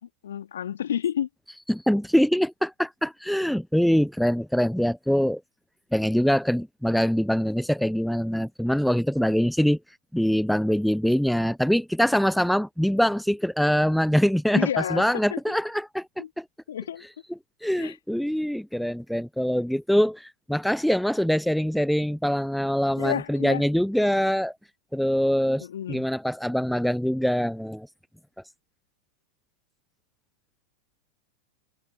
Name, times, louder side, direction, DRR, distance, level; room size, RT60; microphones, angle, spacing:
voice 1, 0.0-1.3 14.5-15.4 16.2-16.3 16.7-17.1 17.8-18.0 23.0-23.6 25.6-26.1, left 9 dB, 65° left, 3.3 m, -30 dB
voice 2, 1.7-5.4 5.9-9.8 10.1-16.1 16.4-16.5 17.6-24.5 24.9-27.9, equal, ahead, 0.6 m, -24 dB
figure-of-eight pair, 90°, 0 cm